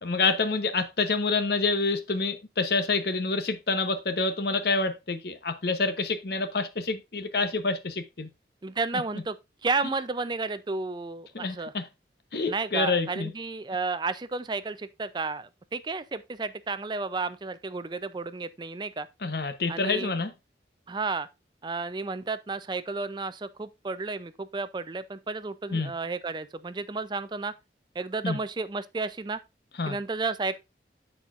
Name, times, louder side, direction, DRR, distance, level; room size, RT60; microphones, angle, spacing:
voice 1, 0.0-8.3 8.9-9.0 11.3-11.9 12.3-13.3 19.2-20.3 25.7-25.9 28.2-28.4 29.8-30.0, left 3 dB, 60° left, 0.8 m, -27 dB
voice 2, 8.6-9.4 9.6-11.7 12.5-19.1 19.7-20.1 20.9-21.3 21.6-27.5 27.9-29.4 29.9-30.6, right 3 dB, 25° right, 0.4 m, -32 dB
12.5 x 4.3 x 2.4 m
head